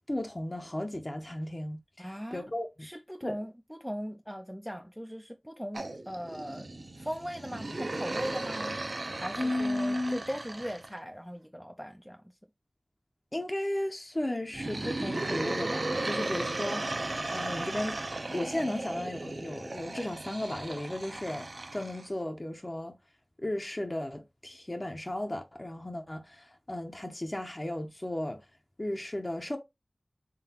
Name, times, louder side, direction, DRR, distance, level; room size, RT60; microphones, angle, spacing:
voice 1, 0.1-2.9 3.2-3.4 9.4-10.2 13.3-16.8 17.3-18.0 18.3-23.0 23.4-28.4 28.8-29.6, left 1 dB, 35° left, 0.6 m, -35 dB
voice 2, 2.0-2.5 2.8-6.7 7.0-8.8 9.2-12.4, equal, ahead, 0.3 m, -39 dB
sound 1, 5.7-10.9 14.5-22.1, right 2 dB, 65° right, 0.6 m, -36 dB
3.8 x 3.3 x 2.8 m
wide cardioid pair, 55°, 0 cm